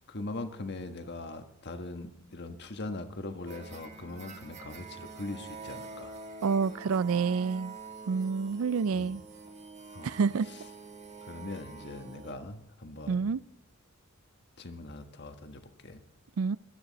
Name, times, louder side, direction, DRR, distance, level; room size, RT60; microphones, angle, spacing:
voice 1, 0.1-6.1 8.9-9.1 9.9-10.1 11.3-13.2 14.6-16.0, left 2 dB, 55° left, 1.5 m, -41 dB
sound 1, 3.5-12.3, right 4 dB, 35° right, 1.5 m, -46 dB
voice 2, 6.4-7.7 8.1-9.2 10.0-10.5 13.1-13.4 16.4-16.6, right 5 dB, 75° right, 0.4 m, -28 dB
19.5 x 12.0 x 4.1 m
head